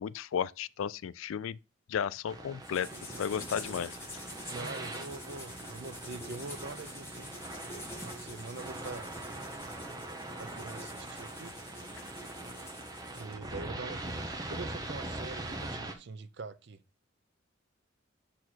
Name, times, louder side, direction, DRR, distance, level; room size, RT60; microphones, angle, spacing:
voice 1, 0.0-1.6 1.9-2.9 3.2-4.0, left 8 dB, 80° left, 0.3 m, -33 dB
sound 1, 2.3-15.9, right 2 dB, 20° right, 0.9 m, -42 dB
sound 2, 2.6-13.3, left 1 dB, 15° left, 1.8 m, -46 dB
voice 2, 4.5-7.3 8.0-9.1 10.4-11.6 13.1-14.2 14.5-16.8, right 3 dB, 60° right, 0.6 m, -44 dB
6.2 x 4.2 x 4.4 m
head